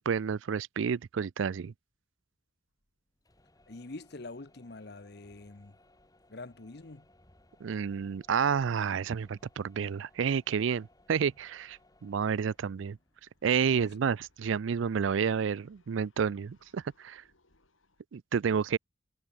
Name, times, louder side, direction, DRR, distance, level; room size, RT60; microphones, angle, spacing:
voice 1, 0.0-1.7 7.6-13.0 13.4-17.2 18.1-18.8, right 6 dB, 70° right, 0.4 m, -30 dB
sound 1, 1.9-2.0 2.3-18.0, left 1 dB, 85° left, 5.8 m, -73 dB
sound 2, 3.1-15.0, left 1 dB, 20° left, 2.2 m, -65 dB
voice 2, 3.7-5.7 6.3-7.1 13.7-13.9, left 2 dB, 55° left, 1.0 m, -45 dB
head